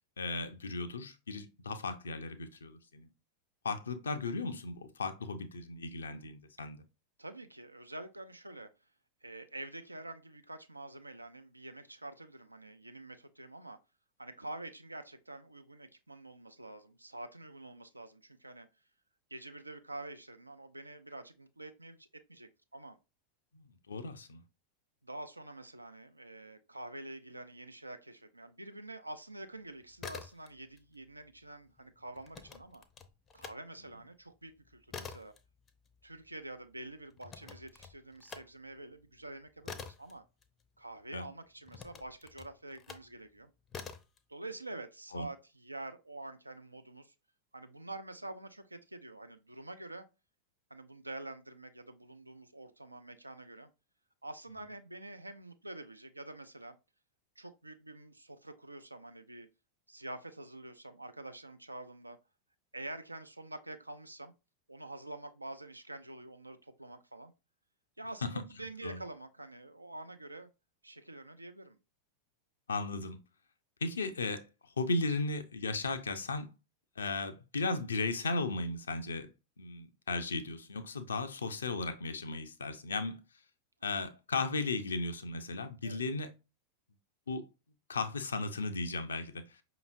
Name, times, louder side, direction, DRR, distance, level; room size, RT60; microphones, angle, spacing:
voice 1, 0.2-3.1 3.6-6.8 23.5-24.4 41.1-41.2 45.1-45.3 68.2-68.3 68.8-69.0 72.7-73.2 73.8-74.5 74.8-76.5 77.0-79.3 79.6-83.2 83.8-86.3 87.3-87.5 87.9-89.6, left 3 dB, 70° left, 0.5 m, -36 dB
voice 2, 7.2-8.7 9.2-13.8 14.2-18.7 19.3-23.0 25.0-32.8 33.3-35.3 36.0-40.2 40.8-43.5 44.3-47.1 47.5-50.0 50.7-53.7 54.2-56.8 57.4-59.5 59.9-62.2 62.7-64.3 64.7-67.3 68.0-70.5 70.8-71.8 83.9-84.1 85.8-86.0, right 2 dB, 85° right, 0.4 m, -47 dB
sound 1, 29.8-30.8 31.1-33.6 34.0-41.0 41.7-43.1 43.7-44.2, left 6 dB, 25° left, 0.5 m, -48 dB
5.3 x 2.9 x 2.5 m
figure-of-eight pair, 90°, 0 cm